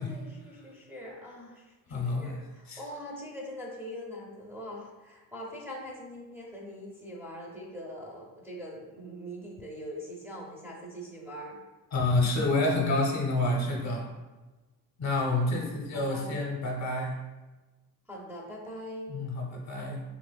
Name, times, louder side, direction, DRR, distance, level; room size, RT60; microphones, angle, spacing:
voice 1, 0.0-11.6 15.9-16.4 18.1-19.2, equal, 5° right, -5 dB, 0.6 m, -42 dB
voice 2, 1.9-2.3 2.7-2.8 11.9-14.1 15.0-17.1 19.1-20.0, left 2 dB, 45° left, -1 dB, 0.7 m, -28 dB
3.5 x 2.9 x 2.2 m, 1.2 s
cardioid pair, 90°, 38 cm